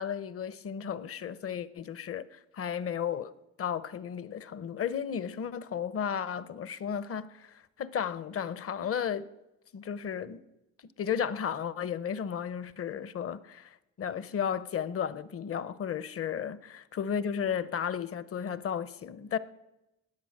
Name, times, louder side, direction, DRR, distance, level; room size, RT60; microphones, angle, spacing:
voice 1, 0.0-3.3 3.6-9.3 9.7-10.4 10.8-19.4, left 8 dB, 50° left, 0.8 m, -34 dB
19.5 x 7.9 x 6.5 m
cardioid pair, 90°, 30 cm